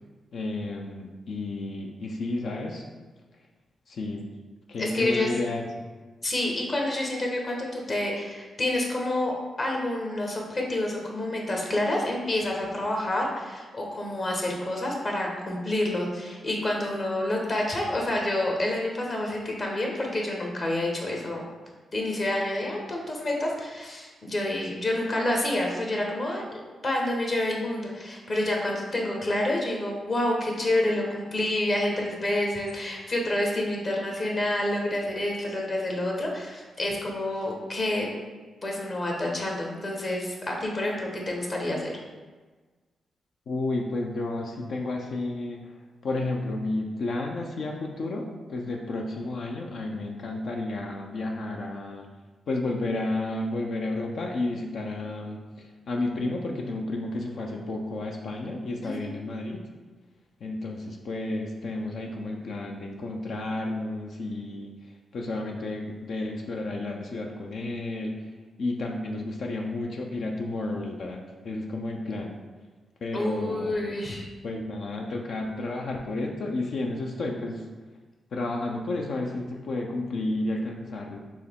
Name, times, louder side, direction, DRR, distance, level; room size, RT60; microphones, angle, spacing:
voice 1, 0.3-2.8 3.9-4.3 4.7-5.7 43.5-45.7 46.0-52.1 52.5-59.6 60.4-64.7 65.1-68.1 68.6-72.3 73.0-73.7 74.4-77.7 78.3-81.2, left 2 dB, 70° left, 0 dB, 0.5 m, -31 dB
voice 2, 4.8-5.3 6.2-21.4 21.9-26.4 26.8-38.1 38.6-41.9 58.8-59.1 73.1-74.2, left 1 dB, 50° left, 0 dB, 1.1 m, -28 dB
4.6 x 3.0 x 3.5 m, 1.3 s
cardioid pair, 60°, 0 cm